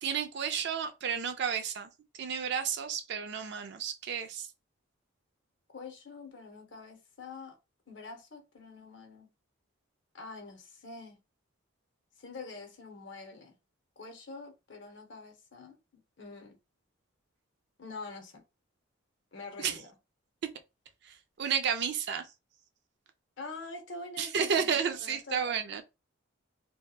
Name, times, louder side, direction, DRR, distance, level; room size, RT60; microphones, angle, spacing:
voice 1, 0.0-1.9 2.2-4.5 19.6-19.8 21.0-22.3 24.2-25.8, right 7 dB, 50° right, 0.3 m, -32 dB
voice 2, 5.7-7.6 7.9-9.3 10.1-11.2 12.2-13.5 14.0-15.8 16.2-16.6 17.8-18.4 19.3-19.9 23.4-25.5, left 3 dB, 60° left, 0.7 m, -45 dB
2.6 x 2.2 x 2.3 m
head